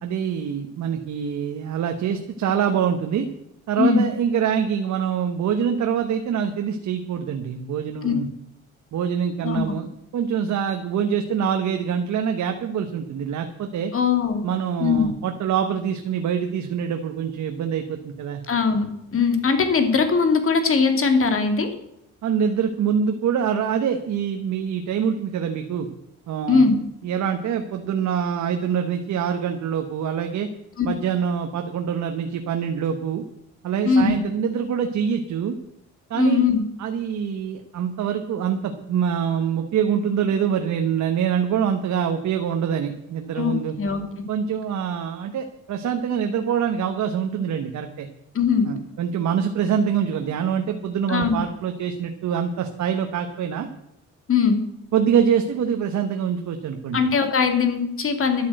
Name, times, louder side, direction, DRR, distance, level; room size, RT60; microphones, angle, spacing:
voice 1, 0.0-3.3 3.7-8.3 8.9-9.9 10.1-13.9 14.4-18.4 22.2-25.9 26.3-26.7 27.0-30.5 30.8-33.2 33.6-35.6 36.1-36.4 36.8-43.7 44.3-48.1 48.7-53.7 54.9-57.0, right 8 dB, 70° right, 5 dB, 1.2 m, -25 dB
voice 2, 9.4-9.7 13.9-14.4 14.8-15.1 18.5-21.7 26.5-26.8 30.8-30.9 33.8-34.1 36.1-36.6 43.4-44.0 48.3-48.7 51.1-51.4 54.3-54.6 56.9-58.5, left 5 dB, 45° left, 7 dB, 2.5 m, -20 dB
11.5 x 8.6 x 7.7 m, 0.82 s
cardioid pair, 90°, 30 cm